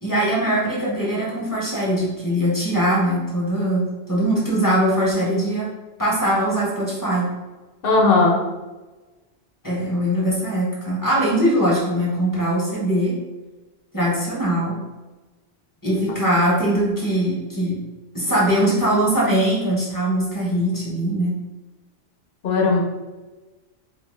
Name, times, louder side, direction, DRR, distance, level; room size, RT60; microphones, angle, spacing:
voice 1, 0.0-5.7 6.0-7.3 9.6-13.1 13.9-14.8 15.8-17.8 18.1-21.4, right 1 dB, 20° left, -5 dB, 0.7 m, -21 dB
voice 2, 7.8-8.4 16.1-16.2 22.4-22.8, left 3 dB, 55° left, -2 dB, 0.8 m, -17 dB
2.7 x 2.5 x 3.2 m, 1.2 s
omnidirectional pair, 1.2 m